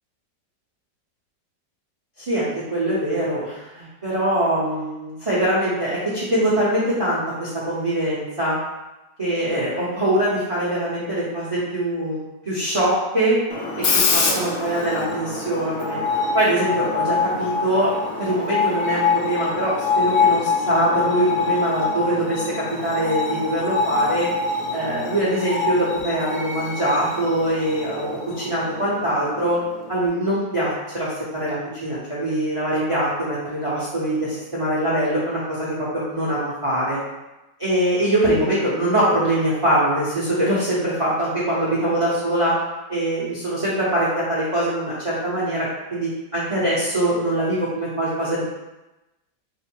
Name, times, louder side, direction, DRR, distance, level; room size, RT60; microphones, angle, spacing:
voice 1, 2.2-8.6 9.2-12.2 12.4-13.4 13.8-16.0 16.3-17.9 18.2-24.3 24.7-29.6 29.9-37.0 37.6-42.6 42.9-48.4, right 1 dB, 45° right, -8 dB, 0.4 m, -23 dB
Screech, 13.5-30.1, left 4 dB, 75° left, 0.8 m, -25 dB
3.8 x 2.0 x 4.4 m, 1.0 s
omnidirectional pair, 2.0 m